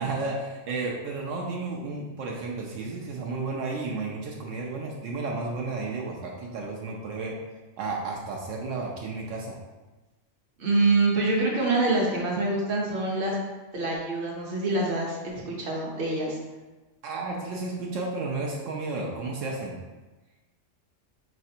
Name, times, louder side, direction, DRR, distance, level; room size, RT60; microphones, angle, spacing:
voice 1, 0.0-7.3 7.8-9.6 17.0-19.8, right 3 dB, 80° right, -2 dB, 0.9 m, -32 dB
voice 2, 10.6-13.4 13.7-16.4, right 2 dB, 50° right, -3 dB, 1.0 m, -25 dB
4.3 x 3.2 x 2.7 m, 1.2 s
omnidirectional pair, 1.3 m